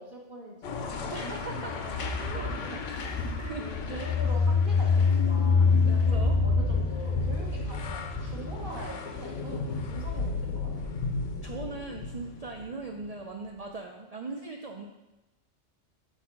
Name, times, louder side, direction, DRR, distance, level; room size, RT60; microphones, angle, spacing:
voice 1, 0.0-10.9, right 2 dB, 45° right, -3 dB, 1.1 m, -44 dB
sound 1, 0.6-13.1, left 2 dB, 80° left, 1.0 m, -34 dB
voice 2, 1.1-1.7 2.3-2.7 3.4-4.1 6.1-6.4 11.4-14.8, right 3 dB, 70° right, 1 dB, 0.3 m, -39 dB
sound 2, 3.7-8.3, left 5 dB, 60° left, 0.4 m, -24 dB
4.7 x 4.1 x 5.8 m, 0.97 s
omnidirectional pair, 1.2 m